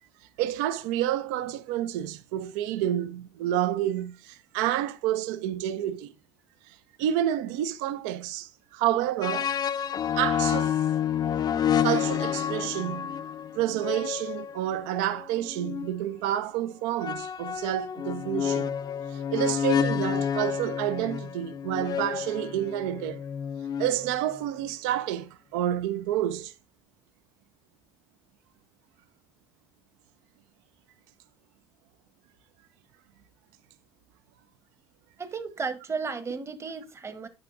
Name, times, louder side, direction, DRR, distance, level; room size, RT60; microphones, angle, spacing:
voice 1, 0.4-6.1 6.7-9.5 10.2-10.9 11.8-13.2 13.5-18.7 19.1-23.2 23.8-26.5, right 12 dB, 80° right, 0.4 m, -29 dB
sound 1, 9.2-15.9 17.0-24.4, left 8 dB, 45° left, 0.5 m, -29 dB
voice 2, 35.2-37.3, right 5 dB, 30° right, 1.0 m, -34 dB
9.2 x 5.9 x 2.5 m
hypercardioid pair, 65°, 10 cm